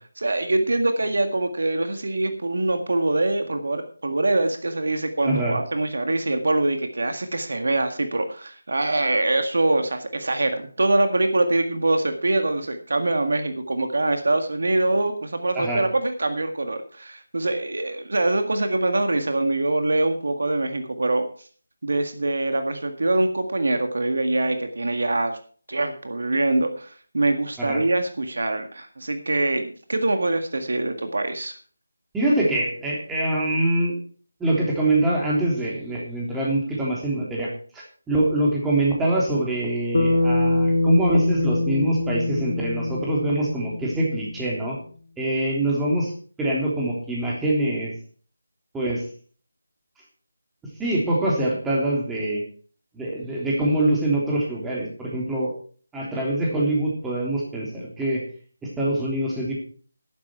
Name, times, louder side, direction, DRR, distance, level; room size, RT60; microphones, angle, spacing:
voice 1, 0.2-21.3 21.8-25.4 25.7-31.5, right 2 dB, 65° right, 7 dB, 1.9 m, -24 dB
voice 2, 5.2-5.6 15.5-15.8 27.6-27.8 32.1-34.0 34.4-44.8 45.2-46.1 46.4-47.9 48.7-49.1 50.8-52.4 52.9-55.5 55.9-58.2 58.6-59.5, right 1 dB, 5° right, -4 dB, 3.5 m, -24 dB
Bass guitar, 39.9-44.4, left 2 dB, 65° left, 2.9 m, -23 dB
11.5 x 11.5 x 4.7 m, 0.44 s
figure-of-eight pair, 160°, 0 cm